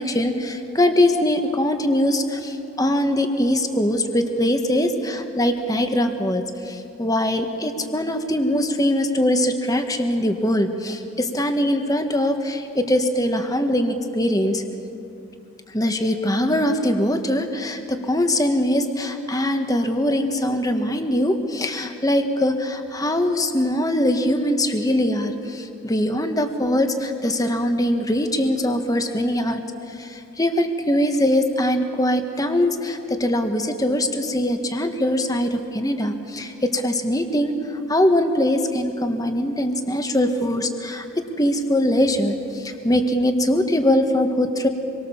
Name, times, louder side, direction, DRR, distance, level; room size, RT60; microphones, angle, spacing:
voice 1, 0.0-14.6 15.7-29.6 30.0-44.7, left 1 dB, 15° left, 6 dB, 1.5 m, -22 dB
27.0 x 23.0 x 7.2 m, 2.7 s
head